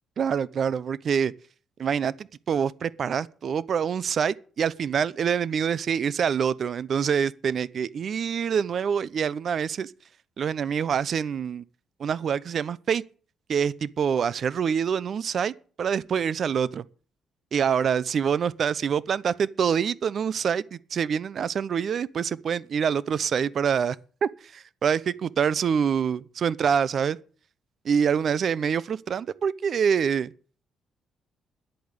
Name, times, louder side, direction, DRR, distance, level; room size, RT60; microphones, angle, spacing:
voice 1, 0.2-1.3 1.8-9.9 10.4-11.6 12.0-13.0 13.5-15.5 15.8-16.8 17.5-24.0 24.2-27.2 27.8-30.3, right 7 dB, 55° right, 0.8 m, -26 dB
10.5 x 8.5 x 9.2 m
cardioid pair, 90°, 0 cm